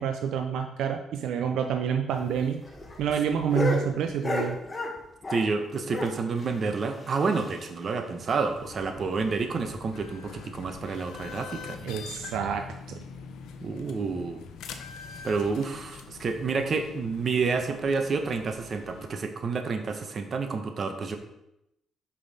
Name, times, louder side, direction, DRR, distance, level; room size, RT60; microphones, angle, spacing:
voice 1, 0.0-2.6 3.0-4.6 11.8-13.0, right 7 dB, 80° right, 5 dB, 0.4 m, -28 dB
sound 1, 2.1-5.6 5.9-7.8 8.1-8.2 8.5-8.6 9.0-9.1 9.7-10.0 10.8-11.0, left 2 dB, 25° left, 1.2 m, -33 dB
voice 2, 5.3-11.8 13.6-14.4 15.2-21.2, right 4 dB, 45° right, 6 dB, 0.8 m, -29 dB
sound 2, 8.5-19.1, left 6 dB, 85° left, 0.6 m, -44 dB
5.4 x 5.1 x 4.1 m, 0.86 s
cardioid pair, 90°, 0 cm